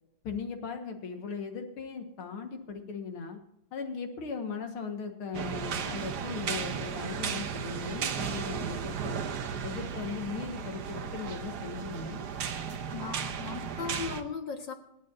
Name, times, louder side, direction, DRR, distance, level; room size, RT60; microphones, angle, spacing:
voice 1, 0.2-3.4 3.7-9.2 9.6-12.2, left 5 dB, 85° left, 4 dB, 2.5 m, -38 dB
sound 1, 5.3-14.2, right 7 dB, 60° right, 1.3 m, -35 dB
voice 2, 12.9-14.7, left 6 dB, 60° left, 3 dB, 2.3 m, -37 dB
26.5 x 9.7 x 2.7 m, 0.83 s
omnidirectional pair, 2.3 m